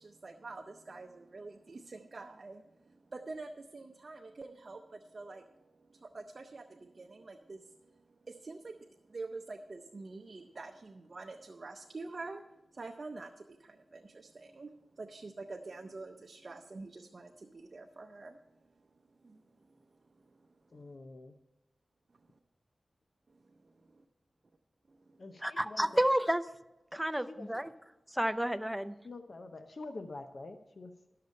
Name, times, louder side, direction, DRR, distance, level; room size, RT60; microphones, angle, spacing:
voice 1, 0.0-12.4 12.7-20.9 23.3-24.1 24.9-25.2, right 3 dB, 55° right, 3 dB, 0.6 m, -47 dB
voice 2, 20.7-21.3 25.2-26.1 27.3-27.6 29.0-30.9, left 2 dB, 60° left, 8 dB, 0.6 m, -46 dB
voice 3, 25.4-26.4 26.9-27.7 28.1-29.0, right 1 dB, 5° right, 12 dB, 0.5 m, -30 dB
12.0 x 6.7 x 5.2 m, 0.98 s
cardioid pair, 45°, 0 cm